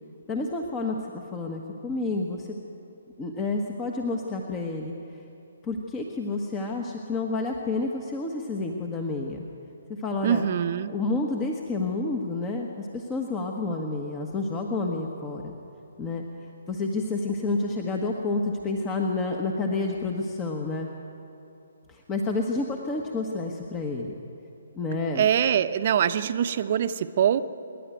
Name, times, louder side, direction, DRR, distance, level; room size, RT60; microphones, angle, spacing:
voice 1, 0.3-2.5 3.2-5.2 5.6-9.4 9.9-10.4 10.8-15.5 16.0-16.2 16.7-20.9 21.9-24.2 24.7-25.3, left 3 dB, 20° left, 2 dB, 1.4 m, -29 dB
voice 2, 10.2-10.9 25.1-27.4, right 9 dB, 45° right, 11 dB, 0.9 m, -23 dB
26.5 x 11.0 x 9.2 m, 2.8 s
figure-of-eight pair, 140°, 0 cm